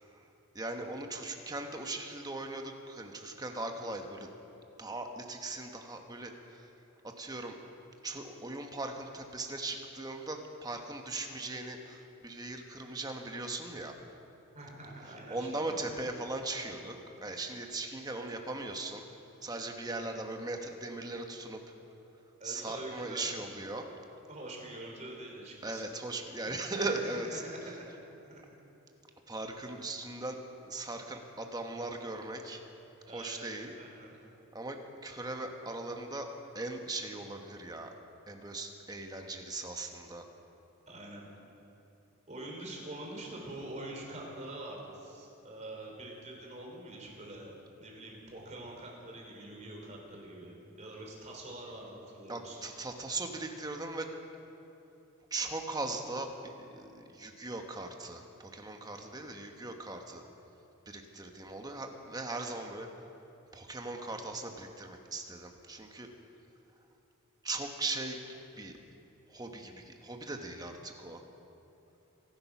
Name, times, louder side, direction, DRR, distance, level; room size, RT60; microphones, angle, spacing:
voice 1, 0.5-4.3 4.8-6.7 7.0-7.6 8.0-13.9 15.3-19.0 19.4-21.6 22.4-23.9 25.6-27.4 29.3-30.4 30.6-32.6 33.1-33.7 34.5-37.9 38.3-40.3 52.3-54.1 55.3-60.2 60.9-63.1 63.5-66.1 67.4-68.2 68.6-68.8 69.3-71.2, right 2 dB, 20° right, 4 dB, 1.2 m, -39 dB
voice 2, 14.5-15.8 22.4-23.4 24.3-25.8 26.5-28.0 28.2-28.4 33.1-34.1 40.9-41.3 42.3-52.6, right 1 dB, 35° right, -1 dB, 3.2 m, -45 dB
25.5 x 8.7 x 6.0 m, 3.0 s
head